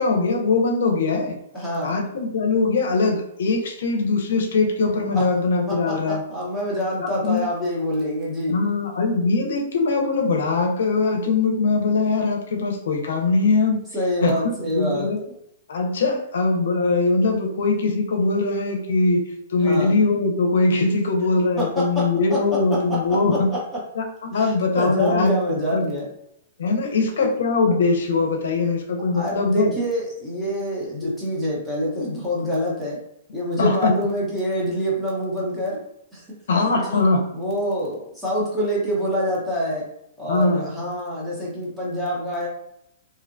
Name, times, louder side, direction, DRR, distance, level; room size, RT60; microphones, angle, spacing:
voice 1, 0.0-1.4 1.8-6.2 7.0-7.4 8.5-13.8 14.2-15.2 15.7-19.2 19.5-23.5 23.9-25.4 25.7-25.9 26.6-29.7 31.0-31.1 33.6-34.1 36.5-37.3 40.3-40.7, left 3 dB, 75° left, 3 dB, 0.5 m, -21 dB
voice 2, 1.5-2.0 5.1-5.2 5.7-8.6 13.9-15.1 19.6-19.9 21.6-22.0 22.3-22.4 22.7-23.6 24.3-26.1 26.8-27.3 29.1-33.0 33.3-35.8 36.1-36.3 36.8-37.0 37.3-39.9 40.2-42.5, equal, 5° right, -7 dB, 0.8 m, -26 dB
2.6 x 2.1 x 2.5 m, 0.77 s
hypercardioid pair, 160°, 0 cm